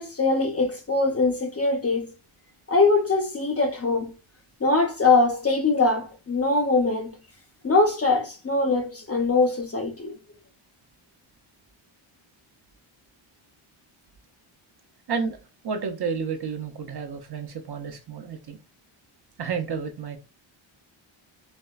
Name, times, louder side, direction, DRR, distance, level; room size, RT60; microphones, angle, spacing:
voice 1, 0.0-2.1 2.7-4.1 4.6-7.2 7.6-10.1, left 3 dB, 30° left, 0.6 m, -22 dB
voice 2, 15.1-15.4 15.6-18.6 19.4-20.2, right 5 dB, 50° right, 0.6 m, -31 dB
4.3 x 2.1 x 2.3 m
wide cardioid pair, 110°, 49 cm